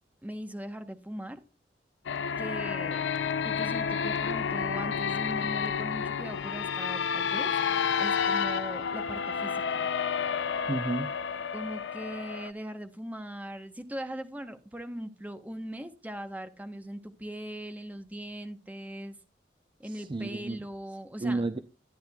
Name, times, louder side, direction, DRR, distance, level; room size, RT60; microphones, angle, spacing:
voice 1, 0.2-1.4 2.4-3.1 3.4-7.5 8.0-9.9 11.5-19.2 19.8-21.4, equal, 10° right, 0.9 m, -40 dB
sound 1, 2.1-12.5, left 6 dB, 90° left, 0.5 m, -30 dB
voice 2, 10.7-11.1 19.8-20.6 21.2-21.6, right 2 dB, 25° right, 0.4 m, -31 dB
13.0 x 9.6 x 2.2 m
head